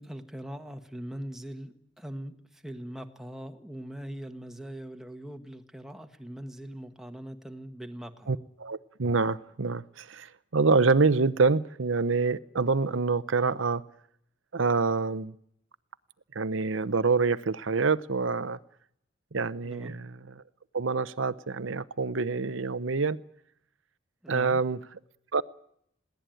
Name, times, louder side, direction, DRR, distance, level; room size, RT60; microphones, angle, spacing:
voice 1, 0.0-8.3 19.6-20.0 24.2-24.6, right 1 dB, ahead, 6 dB, 1.5 m, -41 dB
voice 2, 8.3-13.8 14.5-15.3 16.3-18.6 19.3-20.4 20.7-23.2 24.3-24.8 25.3-25.4, right 4 dB, 90° right, 14 dB, 0.8 m, -26 dB
21.5 x 17.5 x 9.2 m, 0.69 s
head